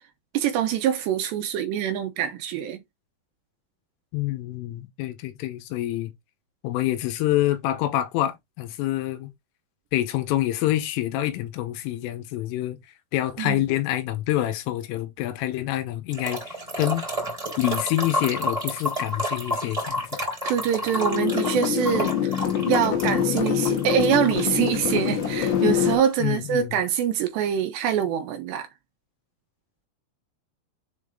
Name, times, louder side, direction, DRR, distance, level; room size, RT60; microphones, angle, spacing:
voice 1, 0.3-2.8 13.4-13.6 20.5-22.3 22.7-28.7, right 9 dB, 80° right, 2.6 m, -24 dB
voice 2, 4.1-6.1 6.6-9.3 9.9-12.8 13.1-17.1 17.6-20.2 26.2-26.8, left 14 dB, 85° left, 3.5 m, -27 dB
sound 1, 16.1-26.1, equal, 10° right, 1.9 m, -30 dB
sound 2, 20.9-26.0, left 10 dB, 70° left, 3.0 m, -25 dB
7.5 x 3.5 x 3.7 m
omnidirectional pair, 5.8 m